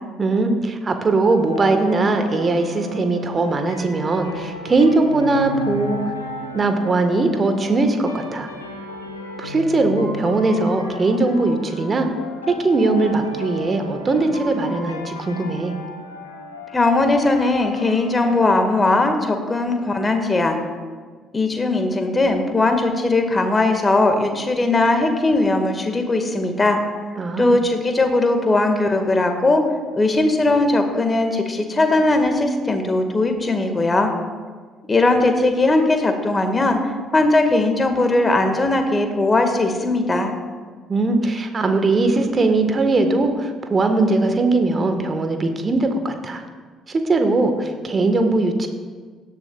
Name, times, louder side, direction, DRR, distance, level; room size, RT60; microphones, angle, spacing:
voice 1, 0.2-6.0 6.5-8.5 9.4-12.1 12.5-15.7 27.2-27.6 40.9-46.4 46.9-48.7, right 3 dB, 35° right, 6 dB, 1.5 m, -20 dB
sound 1, 1.2-20.2, left 2 dB, 85° left, 1.0 m, -35 dB
voice 2, 16.7-20.6 21.3-26.8 27.4-29.7 29.9-34.1 34.9-36.8 37.1-40.3, left 2 dB, 25° left, 5 dB, 1.8 m, -19 dB
17.5 x 12.0 x 2.4 m, 1.5 s
figure-of-eight pair, 45°, 0 cm